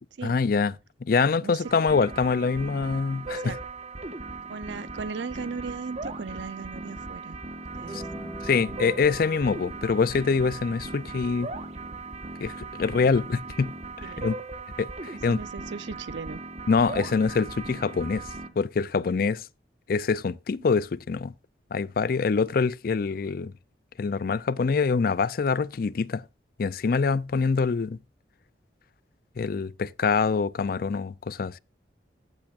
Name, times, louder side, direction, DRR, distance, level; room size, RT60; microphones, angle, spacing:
voice 1, 0.2-0.7 1.1-3.5 7.9-8.0 8.4-11.5 12.4-13.7 14.0-14.3 14.8-15.4 16.7-18.2 18.6-19.4 19.9-21.3 21.7-23.5 24.0-26.2 26.6-28.0 29.4-31.5, left 5 dB, 50° left, 0.4 m, -25 dB
sound 1, 1.6-18.5, right 3 dB, 35° right, 1.2 m, -38 dB
voice 2, 4.5-7.4 7.8-8.1 14.0-14.3 15.1-16.4, right 4 dB, 80° right, 0.6 m, -37 dB
sound 2, 7.7-15.4, equal, 15° right, 1.9 m, -46 dB
14.5 x 8.7 x 2.4 m
head